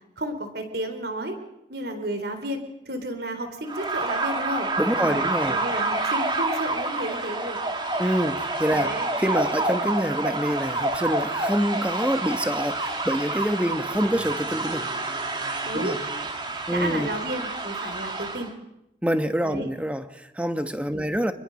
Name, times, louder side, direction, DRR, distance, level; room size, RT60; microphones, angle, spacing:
voice 1, 0.2-1.4 1.7-4.7 5.0-7.6 8.7-9.1 15.6-16.0 16.7-18.5 19.4-19.7 20.9-21.1, right 1 dB, 65° right, 3.9 m, -32 dB
sound 1, 3.7-18.5, right 2 dB, 25° right, 2.5 m, -28 dB
voice 2, 4.8-5.6 8.0-14.8 15.7-16.0 16.7-17.1 19.0-21.3, equal, 5° right, 1.3 m, -26 dB
28.0 x 21.5 x 6.5 m
head